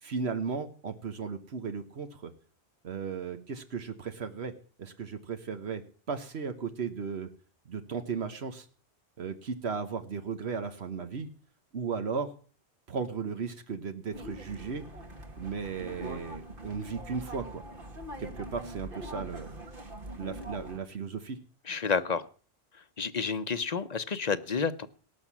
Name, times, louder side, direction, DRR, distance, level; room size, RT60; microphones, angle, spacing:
voice 1, 0.0-2.3 2.8-4.5 4.8-5.8 6.1-7.3 7.7-8.7 9.2-11.3 11.7-12.3 12.9-14.8 15.4-17.6 18.2-19.5 20.2-21.4, right 5 dB, 80° right, 8 dB, 1.4 m, -35 dB
sound 1, 14.1-20.8, right 1 dB, 55° right, 2.0 m, -43 dB
voice 2, 21.7-22.2 23.0-24.9, left 5 dB, 45° left, 12 dB, 0.9 m, -30 dB
18.5 x 6.5 x 7.3 m, 0.42 s
omnidirectional pair, 1.1 m